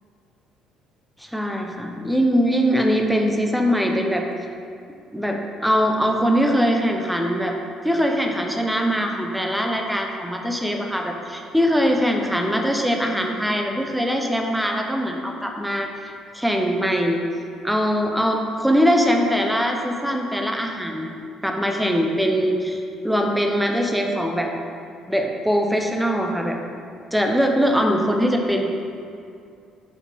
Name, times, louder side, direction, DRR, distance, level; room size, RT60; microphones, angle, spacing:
voice 1, 1.2-4.2 5.1-7.5 7.8-17.2 17.6-21.1 21.4-24.5 25.1-26.6 27.1-28.8, equal, ahead, 2 dB, 0.5 m, -22 dB
7.1 x 4.1 x 4.1 m, 2.4 s
cardioid pair, 150°, 0 cm